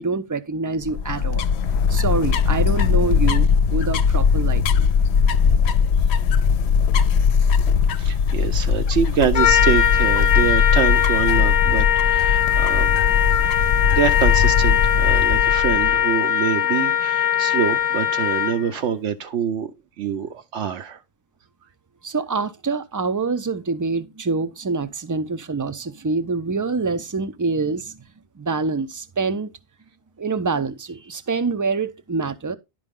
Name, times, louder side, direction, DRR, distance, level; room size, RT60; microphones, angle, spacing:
voice 1, 0.0-1.5 1.9-4.9 22.0-28.0 28.4-29.5 30.2-32.6, right 4 dB, 30° right, 0.3 m, -26 dB
sound 1, 0.8-16.1, left 6 dB, 70° left, 0.8 m, -20 dB
voice 2, 8.0-13.0 13.9-19.7 20.0-21.0, right 8 dB, 85° right, 1.1 m, -25 dB
Trumpet, 9.3-18.7, left 10 dB, 40° left, 0.6 m, -20 dB
11.0 x 5.0 x 3.7 m
omnidirectional pair, 1.2 m